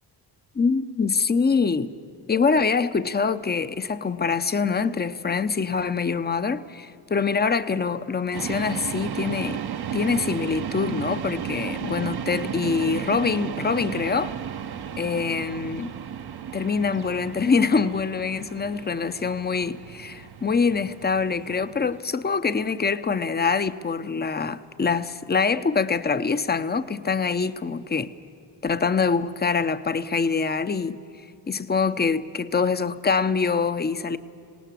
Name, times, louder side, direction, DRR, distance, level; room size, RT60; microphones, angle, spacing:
voice 1, 0.5-1.9 2.3-9.6 9.9-14.3 15.0-15.9 16.5-28.1 28.6-31.0 31.5-34.2, left 5 dB, 25° left, 0.8 m, -24 dB
sound 1, 8.3-22.0, right 9 dB, 65° right, 1.1 m, -34 dB
26.5 x 18.0 x 7.6 m
cardioid pair, 70°, 42 cm